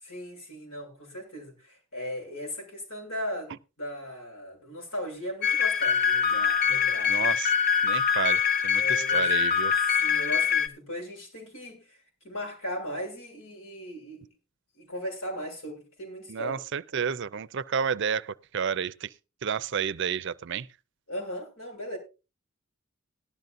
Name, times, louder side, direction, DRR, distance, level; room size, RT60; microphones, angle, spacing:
voice 1, 0.0-7.3 8.7-9.3 9.8-14.3 14.8-16.6 21.1-22.0, equal, 85° left, 7.1 m, -38 dB
sound 1, 5.4-10.7, left 7 dB, 50° left, 1.6 m, -24 dB
voice 2, 7.1-7.5 7.8-9.7 16.3-19.1 19.4-20.7, right 7 dB, 60° right, 0.5 m, -31 dB
18.0 x 12.0 x 2.6 m
head